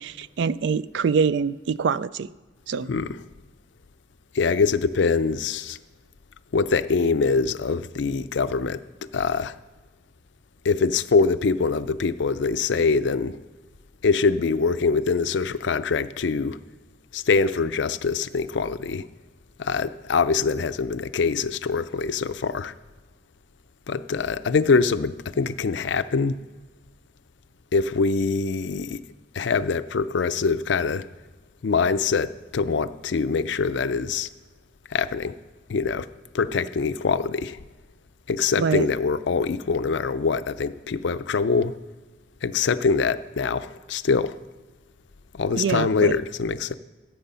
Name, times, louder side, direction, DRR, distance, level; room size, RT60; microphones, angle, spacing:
voice 1, 0.0-2.3 2.7-2.9 38.6-38.9 45.6-46.2, right 6 dB, 65° right, 0.3 m, -24 dB
voice 2, 2.9-3.2 4.3-5.8 6.5-8.8 9.1-9.6 10.6-13.4 14.0-16.6 17.1-19.1 19.6-22.7 23.9-26.4 27.7-29.0 29.3-31.1 31.6-34.3 34.9-35.4 35.7-36.1 36.3-37.6 38.3-41.7 42.4-44.4 45.3-46.7, left 4 dB, 65° left, 0.4 m, -24 dB
14.0 x 7.9 x 5.5 m
head